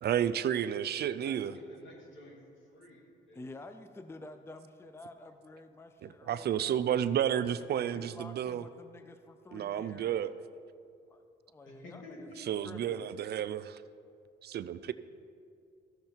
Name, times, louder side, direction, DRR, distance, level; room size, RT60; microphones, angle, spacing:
voice 1, 0.0-1.5 6.0-8.6 9.5-10.3 12.5-13.8 14.4-14.9, right 10 dB, 55° right, 13 dB, 0.4 m, -31 dB
voice 2, 1.0-3.7 11.6-12.4, left 1 dB, 70° left, -1 dB, 2.6 m, -52 dB
voice 3, 3.3-6.7 7.5-10.2 11.1-12.3 12.6-13.1, left 2 dB, 10° left, 9 dB, 0.5 m, -50 dB
14.0 x 6.5 x 4.5 m, 2.3 s
cardioid pair, 90°, 20 cm